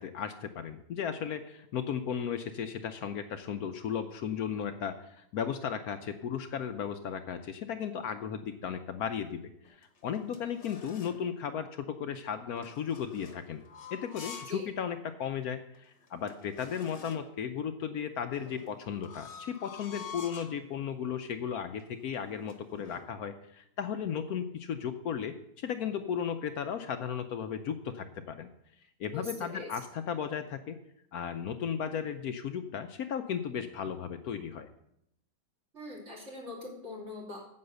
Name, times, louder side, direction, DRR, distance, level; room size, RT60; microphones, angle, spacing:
voice 1, 0.0-9.4 9.7-13.6 13.9-28.5 29.0-30.8 31.1-34.7, left 8 dB, 70° left, 8 dB, 1.1 m, -35 dB
sound 1, 9.6-11.3 12.6-14.6 15.0-15.1 15.7-15.8 16.0-17.4 18.4-20.6 21.3-21.5 21.8-23.1, left 6 dB, 45° left, 1.3 m, -48 dB
voice 2, 29.1-29.7 35.7-37.5, left 2 dB, 40° right, -3 dB, 3.4 m, -42 dB
9.6 x 7.8 x 6.5 m, 0.77 s
omnidirectional pair, 1.8 m